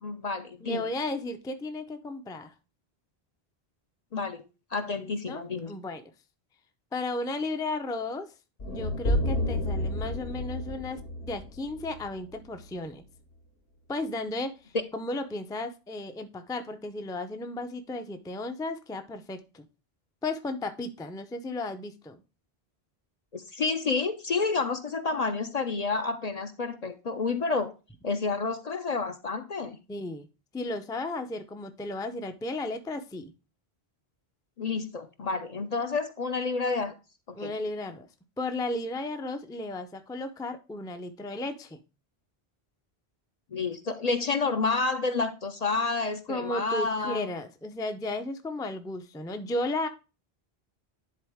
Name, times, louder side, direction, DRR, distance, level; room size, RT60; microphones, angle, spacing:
voice 1, 0.0-0.8 4.1-4.4 4.7-5.7 14.7-14.8 23.3-27.7 28.0-29.8 34.6-36.9 37.3-37.5 43.5-47.3, left 4 dB, 45° left, 8 dB, 0.6 m, -29 dB
voice 2, 0.6-2.5 5.0-6.0 6.9-8.3 8.6-13.0 13.9-19.7 20.2-22.2 29.9-30.3 30.5-33.3 37.4-38.1 38.4-41.8 46.3-49.9, left 2 dB, 5° left, 7 dB, 0.4 m, -34 dB
sound 1, 8.6-12.7, left 1 dB, 70° left, 1.4 m, -31 dB
10.0 x 3.9 x 3.5 m, 0.30 s
omnidirectional pair, 1.0 m